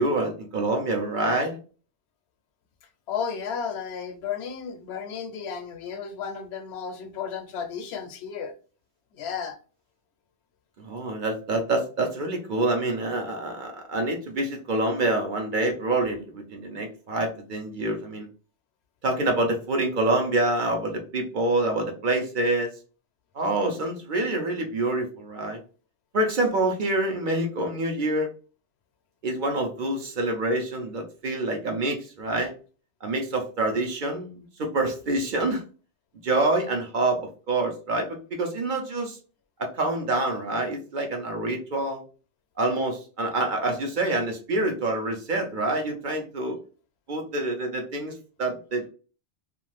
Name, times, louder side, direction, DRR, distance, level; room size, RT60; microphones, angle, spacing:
voice 1, 0.0-1.6 10.8-18.3 19.0-22.7 23.3-25.6 26.1-28.3 29.2-32.5 33.0-35.6 36.2-39.2 39.6-42.0 42.6-46.6 47.1-48.9, right 2 dB, 50° right, 0.7 m, -26 dB
voice 2, 3.1-8.5 9.1-9.6, left 6 dB, 70° left, 0.8 m, -33 dB
2.4 x 2.3 x 3.1 m
omnidirectional pair, 1.2 m